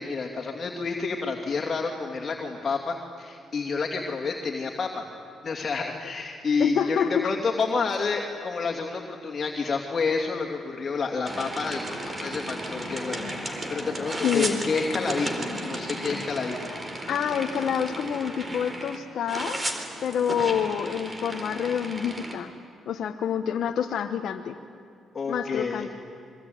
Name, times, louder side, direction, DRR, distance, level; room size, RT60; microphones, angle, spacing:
voice 1, 0.0-5.1 5.4-16.7 25.1-25.9, left 4 dB, 40° left, 0 dB, 2.9 m, -29 dB
voice 2, 6.6-7.4 14.2-14.6 17.1-19.6 20.0-22.5 22.9-24.6 25.3-25.9, left 8 dB, 65° left, 4 dB, 1.3 m, -27 dB
sound 1, 11.3-19.0 19.3-22.4, right 1 dB, 20° right, 4.1 m, -34 dB
26.5 x 23.5 x 9.5 m, 2.4 s
cardioid pair, 90°, 0 cm